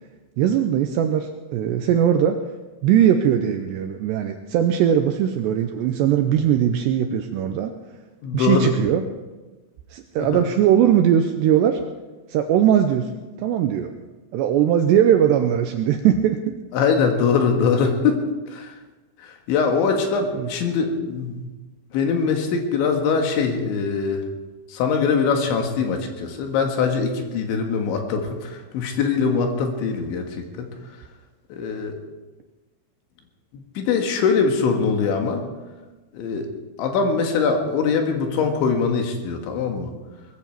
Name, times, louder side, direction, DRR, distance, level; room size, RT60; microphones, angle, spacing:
voice 1, 0.4-2.4 2.8-7.7 8.3-9.0 9.9-11.8 12.3-13.1 13.4-13.9 14.3-16.6 20.3-20.5, right 9 dB, 85° right, 6 dB, 2.5 m, -20 dB
voice 2, 8.2-8.7 10.2-10.4 16.7-18.8 19.2-21.4 21.9-24.3 24.7-30.7 31.5-32.0 33.5-35.4 36.1-36.5 36.8-40.0, left 5 dB, 70° left, 4 dB, 3.8 m, -22 dB
20.0 x 15.0 x 4.6 m, 1.2 s
omnidirectional pair, 5.7 m